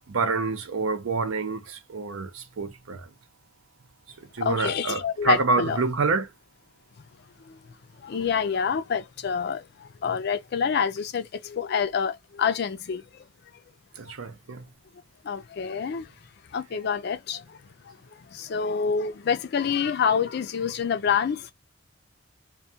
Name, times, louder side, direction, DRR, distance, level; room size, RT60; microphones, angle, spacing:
voice 1, 0.1-3.1 4.3-6.3 14.0-14.6, right 4 dB, 80° right, 0.6 m, -27 dB
voice 2, 4.4-5.8 7.4-7.6 8.0-13.2 14.1-14.2 15.2-16.1 16.5-21.5, left 6 dB, 50° left, 0.4 m, -27 dB
2.2 x 2.2 x 2.7 m
head